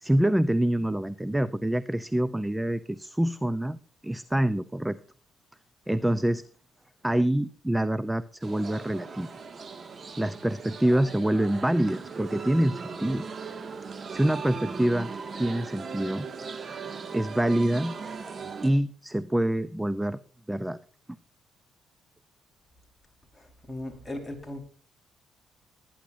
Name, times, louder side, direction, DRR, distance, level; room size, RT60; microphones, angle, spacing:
voice 1, 0.0-5.0 5.9-6.4 7.0-9.3 10.2-13.3 14.1-15.1 15.4-16.3 17.1-17.9 18.6-20.2 20.5-20.8, right 1 dB, 10° right, 16 dB, 0.6 m, -26 dB
sound 1, 8.4-18.7, right 5 dB, 40° right, 2.0 m, -39 dB
voice 2, 23.3-24.6, left 1 dB, 10° left, 2 dB, 4.6 m, -38 dB
19.5 x 10.0 x 2.7 m, 0.41 s
cardioid pair, 90°, 0 cm